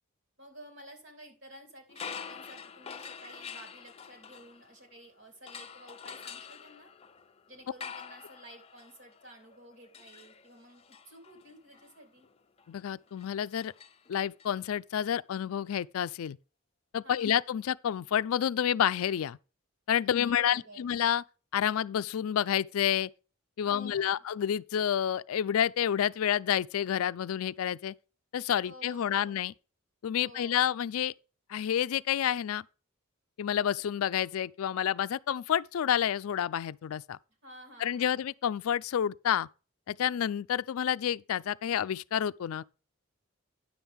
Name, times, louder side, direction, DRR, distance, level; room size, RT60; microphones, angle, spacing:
voice 1, 0.4-6.9 7.5-12.3 17.0-17.3 20.0-20.9 23.6-24.2 28.6-29.4 30.2-30.8 37.4-38.2, right 1 dB, 55° right, 3.5 m, -52 dB
sound 1, 1.9-5.0 5.5-14.5, left 6 dB, 30° left, 0.6 m, -47 dB
voice 2, 12.7-13.7 14.1-16.4 16.9-19.4 19.9-21.2 21.5-23.1 23.6-28.0 28.3-29.5 30.0-31.1 31.5-32.6 33.4-37.2 37.8-39.5 39.9-42.6, left 9 dB, 75° left, 0.4 m, -29 dB
10.0 x 7.2 x 3.5 m
head